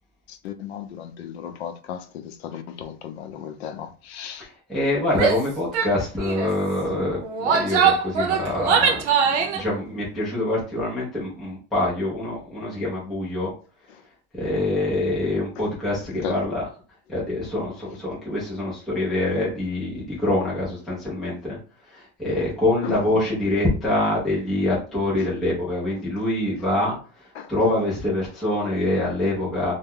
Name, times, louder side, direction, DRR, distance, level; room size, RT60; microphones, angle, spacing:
voice 1, 0.3-4.5 13.9-14.0 15.6-15.7 16.1-16.4 17.9-18.0 20.9-21.0 22.8-23.2 25.2-25.3 27.3-27.5, left 8 dB, 65° left, 0.6 m, -35 dB
voice 2, 4.4-13.5 14.3-16.6 17.1-21.6 21.9-27.0 27.5-29.7, left 1 dB, ahead, 0.3 m, -25 dB
Female speech woman speaking / Yell, 5.1-5.4 5.7-5.9 6.2-6.5 7.2-9.6, right 6 dB, 80° right, 0.6 m, -21 dB
2.7 x 2.1 x 3.6 m
supercardioid pair, 165°, 34 cm